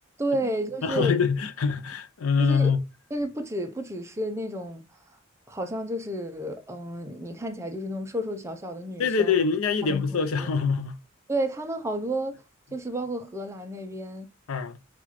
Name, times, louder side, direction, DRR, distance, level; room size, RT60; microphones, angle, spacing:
voice 1, 0.2-1.2 2.4-2.7 3.1-4.8 5.5-9.4 9.8-10.5 11.3-12.4 12.7-14.3, right 1 dB, 15° right, 0.5 m, -31 dB
voice 2, 0.8-2.8 9.0-11.0 14.5-14.8, left 5 dB, 85° left, 0.5 m, -24 dB
5.7 x 2.4 x 2.9 m
head